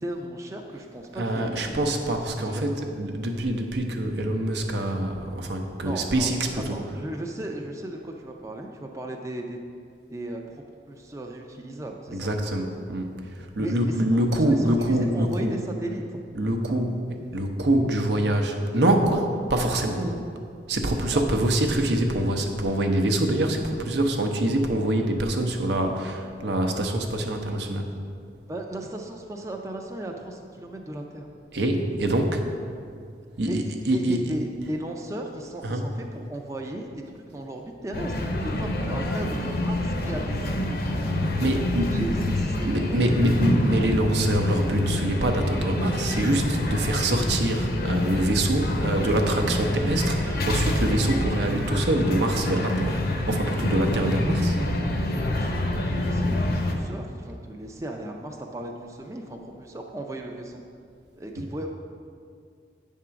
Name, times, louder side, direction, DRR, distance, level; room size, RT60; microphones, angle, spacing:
voice 1, 0.0-1.8 2.4-2.6 5.8-6.3 6.7-9.6 10.1-12.3 13.6-16.2 21.1-21.2 27.5-27.6 28.5-31.3 33.5-41.1 41.6-43.4 48.6-49.1 54.3-56.4 56.7-60.6 61.2-61.7, right 1 dB, 15° right, 2 dB, 0.4 m, -36 dB
voice 2, 1.1-6.8 12.1-15.6 16.3-17.1 17.3-20.2 20.7-27.9 31.5-32.4 33.4-34.3 35.6-35.9 41.4-42.0 42.2-42.4 42.6-53.0 53.3-54.6 61.4-61.5, right 1 dB, 75° right, 3 dB, 0.7 m, -25 dB
sound 1, 37.9-56.7, left 1 dB, 55° left, 0.7 m, -27 dB
8.5 x 3.7 x 5.7 m, 2.3 s
head